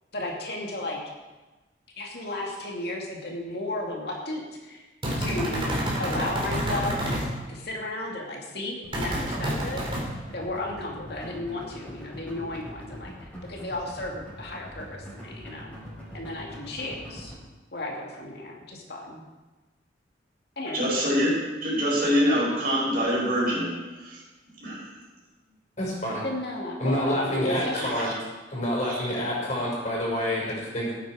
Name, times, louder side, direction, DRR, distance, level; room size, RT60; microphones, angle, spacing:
voice 1, 0.1-1.0 2.0-4.9 5.2-9.8 10.3-15.8 16.1-17.3 17.7-19.2 20.6-20.8 26.2-28.0, left 2 dB, 60° left, -1 dB, 2.3 m, -34 dB
sound 1, 5.0-7.3 8.9-10.0, equal, 30° right, 3.4 m, -28 dB
sound 2, 8.8-17.3, equal, 10° left, 5.5 m, -42 dB
voice 2, 20.7-21.3 21.6-23.7 24.0-24.2 24.6-24.8 27.5-28.1 28.9-29.0, equal, 55° right, -4 dB, 5.4 m, -25 dB
voice 3, 25.8-26.2 26.8-28.1 28.5-30.9, left 1 dB, 40° left, -4 dB, 5.6 m, -28 dB
17.5 x 9.2 x 4.9 m, 1.2 s
head